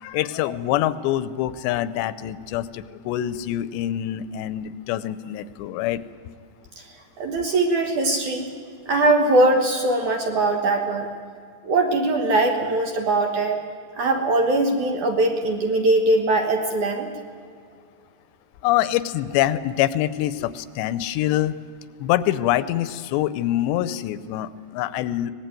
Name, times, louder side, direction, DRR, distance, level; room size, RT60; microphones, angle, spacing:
voice 1, 0.0-6.0 18.6-21.6 22.0-25.3, left 13 dB, 85° left, 15 dB, 2.9 m, -25 dB
voice 2, 7.2-8.5 8.9-11.1 11.6-13.6 14.0-17.1, right 2 dB, 60° right, 3 dB, 2.2 m, -21 dB
24.0 x 19.0 x 9.2 m, 2.2 s
omnidirectional pair, 5.0 m